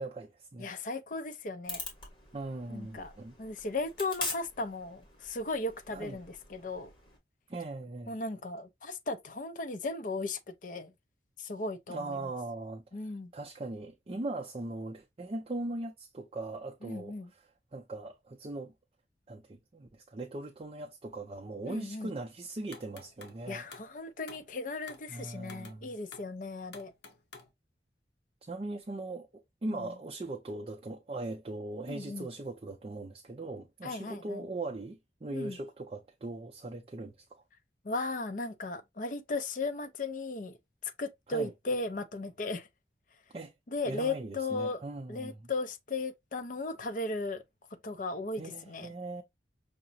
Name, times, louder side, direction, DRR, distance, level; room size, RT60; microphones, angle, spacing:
voice 1, 0.0-0.7 2.3-3.4 5.9-6.2 7.5-8.1 11.9-12.8 13.3-17.2 17.7-18.7 19.3-23.6 25.1-25.9 28.4-37.4 41.3-41.5 43.3-43.5 43.9-45.5 48.4-49.2, right 2 dB, 30° right, 0.4 m, -40 dB
voice 2, 0.6-1.8 2.7-3.1 3.4-6.9 8.1-10.9 11.4-12.3 12.9-13.3 16.8-17.3 21.7-22.1 23.5-26.9 29.6-29.9 31.9-32.3 33.8-34.4 35.3-35.6 37.8-40.6 40.8-42.7 43.7-44.8 45.1-47.4 47.8-48.9, left 3 dB, 45° left, 0.5 m, -36 dB
sound 1, 1.7-7.2, left 3 dB, 25° left, 1.3 m, -43 dB
sound 2, 22.7-23.4 23.7-24.0 24.3-24.5 24.9-25.1 25.4-25.8 26.1-26.3 26.7-27.5, left 4 dB, 75° left, 0.8 m, -50 dB
5.7 x 2.0 x 2.6 m
head